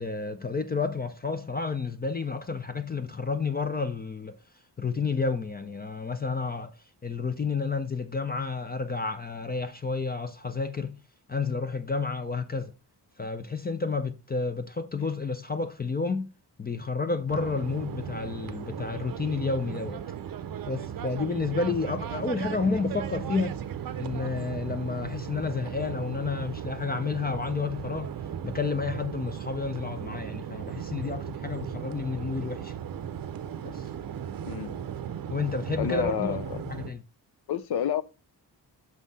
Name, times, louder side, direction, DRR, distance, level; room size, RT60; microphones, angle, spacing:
voice 1, 0.0-4.4 4.8-6.8 7.0-11.0 11.3-12.7 13.2-16.3 16.6-20.0 20.7-23.6 24.0-28.1 28.4-32.7 33.6-33.9 35.3-37.0, left 4 dB, 25° left, 0.4 m, -30 dB
sound 1, 17.3-36.9, right 9 dB, 55° right, 0.6 m, -36 dB
voice 2, 35.8-36.4 37.5-38.0, left 10 dB, 65° left, 0.6 m, -29 dB
6.4 x 5.6 x 4.0 m
wide cardioid pair, 160°, 41 cm